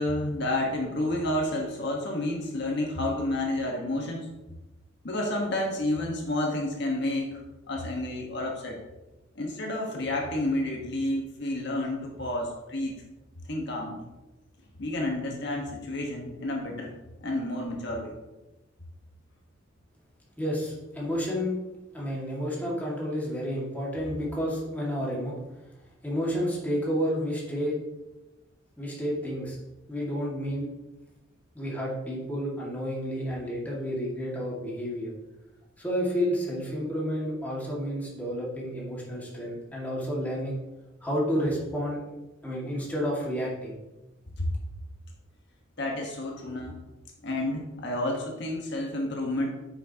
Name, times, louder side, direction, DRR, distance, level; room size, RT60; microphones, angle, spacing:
voice 1, 0.0-4.3 5.0-7.4 7.7-8.8 9.3-13.0 13.5-14.1 14.8-16.9 17.2-18.2 21.0-21.1 44.4-44.5 45.8-46.8 47.2-49.5, left 1 dB, 60° left, 0 dB, 1.4 m, -30 dB
voice 2, 20.4-21.6 21.9-25.4 26.0-27.8 28.8-29.6 29.9-30.7 31.5-35.1 35.8-40.6 41.0-42.1 42.4-43.8, equal, 10° left, -5 dB, 2.0 m, -30 dB
10.0 x 6.2 x 2.9 m, 1.0 s
head